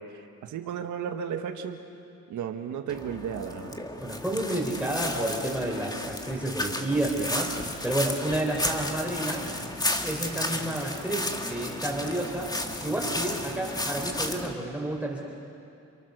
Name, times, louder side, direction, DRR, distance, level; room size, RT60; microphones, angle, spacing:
voice 1, 0.0-1.8 2.3-3.8, right 7 dB, 75° right, 5 dB, 1.6 m, -34 dB
sound 1, 2.9-14.5, left 1 dB, 15° left, 2.1 m, -33 dB
voice 2, 4.0-7.5 7.8-9.5 10.0-12.5 12.8-15.2, right 1 dB, 5° right, -2 dB, 4.4 m, -30 dB
29.0 x 24.0 x 6.7 m, 2.6 s
cardioid pair, 90°, 30 cm